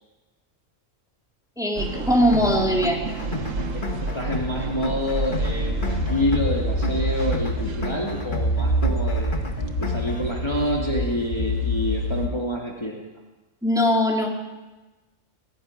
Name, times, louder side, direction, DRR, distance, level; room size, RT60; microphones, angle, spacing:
voice 1, 1.6-3.1 13.6-14.3, equal, 5° right, -1 dB, 3.2 m, -21 dB
sound 1, 1.7-12.2, right 3 dB, 85° right, 1.8 m, -32 dB
sound 2, 2.3-10.3, left 3 dB, 40° left, 2.1 m, -33 dB
voice 2, 3.7-9.4 9.8-12.9, left 1 dB, 20° left, -2 dB, 2.7 m, -28 dB
sound 3, 5.5-12.3, equal, 90° left, 2.4 m, -27 dB
20.0 x 14.5 x 9.9 m, 1.1 s
omnidirectional pair, 1.3 m